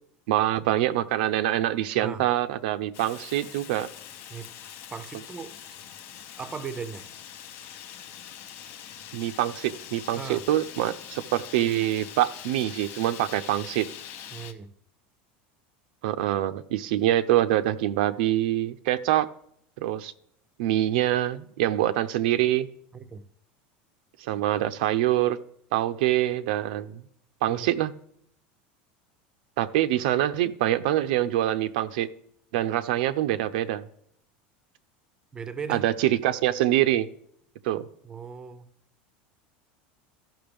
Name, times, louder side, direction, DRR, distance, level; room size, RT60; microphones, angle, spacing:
voice 1, 0.3-3.9 9.1-13.9 16.0-19.3 19.8-20.1 20.6-22.7 24.2-25.4 25.7-27.0 27.4-27.9 29.6-32.1 32.5-33.8 35.7-37.1 37.6-37.8, right 13 dB, 75° right, 0.5 m, -25 dB
Fire, 2.9-14.5, left 9 dB, 45° left, 0.8 m, -43 dB
voice 2, 4.9-5.6 6.4-7.1 10.1-10.5 14.3-14.7 20.9-21.1 22.9-23.3 27.5-27.7 35.3-35.8 38.0-38.7, right 6 dB, 15° right, 0.6 m, -38 dB
14.5 x 5.8 x 3.4 m
supercardioid pair, 155°, 5 cm